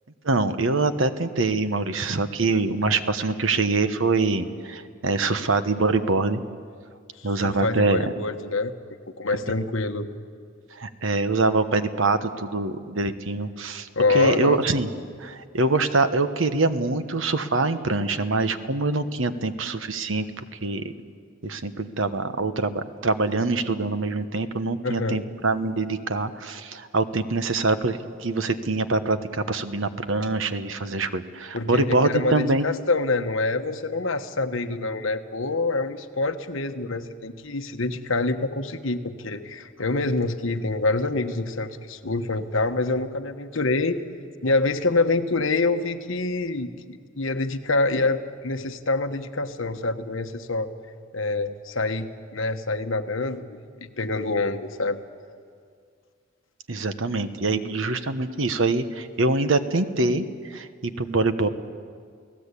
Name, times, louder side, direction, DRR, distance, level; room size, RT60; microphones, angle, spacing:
voice 1, 0.2-6.4 7.2-8.0 10.8-14.9 15.2-20.8 21.4-32.7 56.7-61.5, right 3 dB, 70° right, 10 dB, 1.2 m, -24 dB
voice 2, 7.2-8.7 9.2-10.1 13.9-14.6 24.8-25.2 31.5-44.0 44.4-50.7 51.1-55.0, left 3 dB, 70° left, 7 dB, 1.3 m, -26 dB
29.5 x 17.5 x 8.4 m, 2.1 s
head